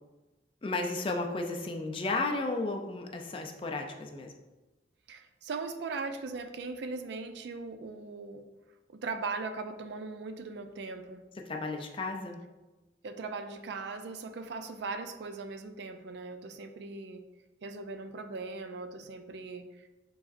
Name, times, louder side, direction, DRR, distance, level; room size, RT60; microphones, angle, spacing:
voice 1, 0.6-4.3 11.4-12.4, left 3 dB, 30° left, 3 dB, 0.4 m, -33 dB
voice 2, 5.1-8.4 8.9-11.2 13.0-17.2 17.6-19.9, right 4 dB, 65° right, 8 dB, 0.4 m, -39 dB
4.7 x 4.1 x 2.5 m, 1.1 s
head